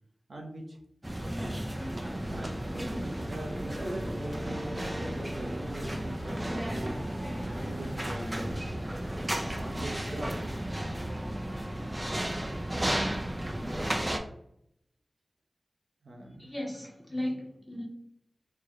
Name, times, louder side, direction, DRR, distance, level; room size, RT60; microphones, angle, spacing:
voice 1, 0.3-0.8 1.2-1.6 2.3-7.0 7.6-8.6 9.4-10.5 16.0-16.5, right 1 dB, 75° right, 0 dB, 0.7 m, -41 dB
sound 1, 1.0-14.2, right 1 dB, 20° right, 0.5 m, -34 dB
sound 2, 2.2-9.9, left 1 dB, 50° left, 0.4 m, -46 dB
voice 2, 16.4-17.8, left 1 dB, 25° left, -3 dB, 1.4 m, -35 dB
3.3 x 2.1 x 3.5 m, 0.72 s
cardioid pair, 45°, 0 cm